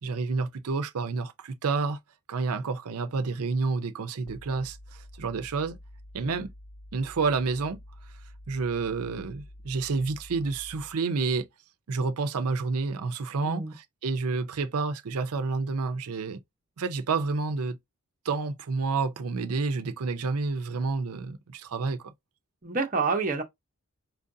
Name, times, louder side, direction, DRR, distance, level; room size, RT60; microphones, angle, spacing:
voice 1, 0.0-2.0 2.3-5.8 6.1-6.5 6.9-7.8 8.5-11.5 11.9-13.6 14.0-16.4 16.8-17.8 18.3-22.1, right 4 dB, 85° right, 0.5 m, -29 dB
sound 1, 4.3-11.1, left 1 dB, 10° left, 0.4 m, -48 dB
voice 2, 13.4-13.7 22.6-23.4, right 4 dB, 35° right, 0.7 m, -28 dB
4.5 x 2.5 x 2.6 m
head